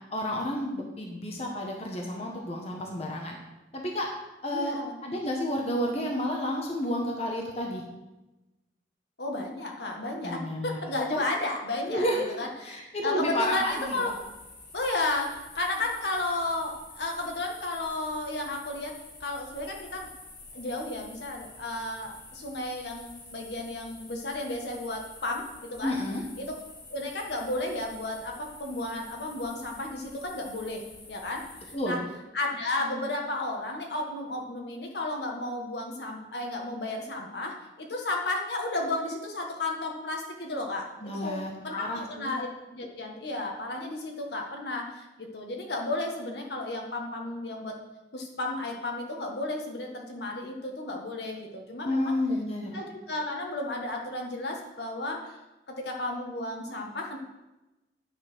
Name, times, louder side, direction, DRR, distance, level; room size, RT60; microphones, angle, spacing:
voice 1, 0.1-3.4 3.7-4.1 4.4-7.9 10.2-10.8 11.1-11.2 11.9-12.3 12.6-14.1 25.8-26.2 31.7-32.0 41.0-42.3 51.8-52.8, left 1 dB, 35° left, 0 dB, 1.2 m, -31 dB
voice 2, 4.5-5.0 9.2-12.8 13.0-14.1 14.7-20.1 20.5-26.5 26.9-47.8 48.1-52.2 52.7-55.4 55.7-57.2, left 2 dB, 70° left, 1 dB, 1.6 m, -33 dB
sound 1, 13.4-31.7, left 2 dB, 85° left, 3.9 m, -49 dB
9.4 x 5.6 x 6.2 m, 1.0 s
head